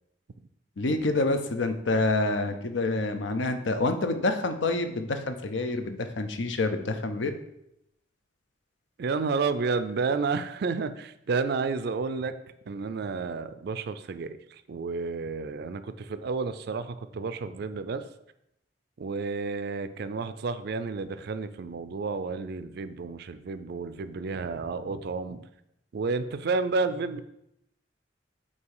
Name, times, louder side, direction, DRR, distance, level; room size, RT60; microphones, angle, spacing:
voice 1, 0.8-7.3, left 2 dB, 75° left, 7 dB, 0.7 m, -27 dB
voice 2, 9.0-12.3 12.7-14.4 14.7-18.0 19.0-25.4 25.9-27.2, right 4 dB, 60° right, 12 dB, 0.4 m, -31 dB
8.2 x 2.8 x 4.8 m, 0.80 s
head